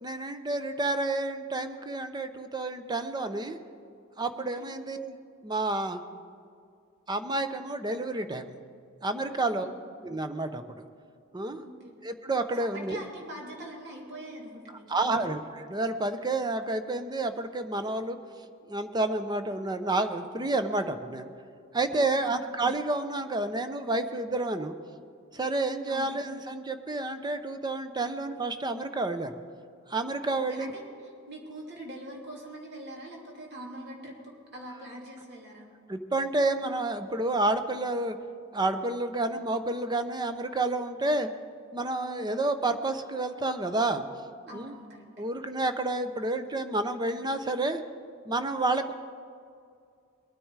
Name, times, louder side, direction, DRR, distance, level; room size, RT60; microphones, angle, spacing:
voice 1, 0.0-3.6 4.2-5.2 5.4-6.0 7.1-8.5 9.0-9.7 10.0-10.8 11.3-11.6 12.0-13.0 14.9-18.2 18.7-21.3 21.7-24.8 25.3-29.4 29.9-30.7 35.9-38.2 38.5-41.3 41.7-44.0 44.5-44.7 45.2-47.8 48.3-48.9, right 2 dB, 20° right, 9 dB, 0.7 m, -30 dB
voice 2, 9.3-9.8 11.6-12.0 12.6-15.3 21.9-22.4 25.9-26.1 30.3-35.7 42.1-42.3 44.5-45.0, right 1 dB, 55° right, -1 dB, 2.8 m, -43 dB
21.5 x 9.8 x 4.8 m, 2.3 s
head